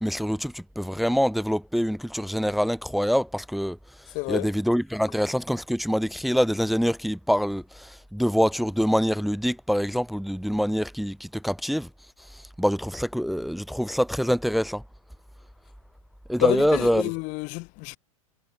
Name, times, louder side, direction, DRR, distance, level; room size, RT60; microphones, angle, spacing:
voice 1, 0.0-3.8 4.3-11.9 12.6-14.8 16.3-17.1, equal, ahead, 1.4 m, -25 dB
voice 2, 4.1-4.5 16.4-18.0, left 30 dB, 45° left, 1.8 m, -28 dB
hypercardioid pair, 100°, 18 cm